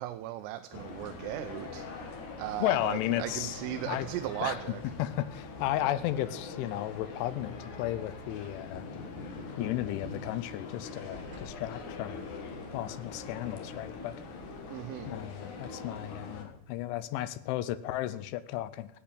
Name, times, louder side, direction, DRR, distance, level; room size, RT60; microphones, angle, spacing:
voice 1, 0.0-4.8 14.7-15.2, right 14 dB, 90° right, 8 dB, 3.3 m, -37 dB
sound 1, 0.7-16.4, left 3 dB, 55° left, 2.3 m, -43 dB
voice 2, 2.6-3.6 3.9-4.1 4.4-4.6 5.0-8.9 9.6-12.2 12.7-14.3 15.1-18.9, left 14 dB, 80° left, 15 dB, 2.9 m, -34 dB
sound 2, 7.5-8.2 10.0-10.1 10.4-10.6 11.0-12.4 13.5-13.6 14.2-14.5, right 2 dB, 35° right, 5.1 m, -53 dB
14.0 x 8.5 x 8.5 m, 0.85 s
omnidirectional pair, 5.8 m